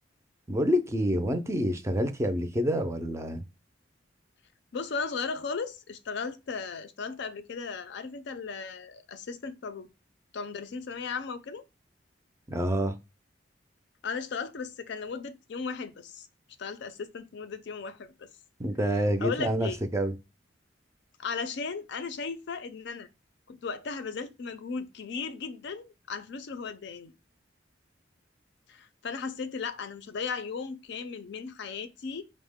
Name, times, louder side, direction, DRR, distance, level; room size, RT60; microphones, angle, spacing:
voice 1, 0.5-3.4 12.5-13.0 18.6-20.1, equal, 15° right, 0.4 m, -27 dB
voice 2, 4.7-9.9 10.3-11.6 14.0-16.3 16.6-18.3 19.2-19.8 21.2-23.1 23.5-27.1 28.7-32.2, left 5 dB, 65° left, 0.4 m, -36 dB
5.2 x 2.1 x 3.5 m
head